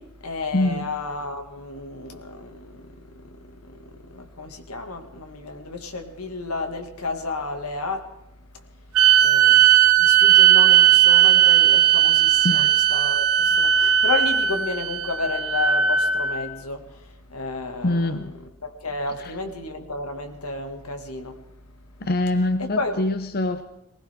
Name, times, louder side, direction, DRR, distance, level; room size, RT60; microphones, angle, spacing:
voice 1, 0.0-8.1 9.2-21.4 22.3-23.0, left 3 dB, 85° left, 2.3 m, -32 dB
voice 2, 0.5-0.9 12.4-12.8 17.8-18.3 19.2-19.3 22.0-23.6, left 2 dB, 45° left, 0.9 m, -24 dB
sound 1, 8.9-16.4, right 10 dB, 80° right, 1.1 m, -17 dB
19.5 x 19.5 x 3.8 m
head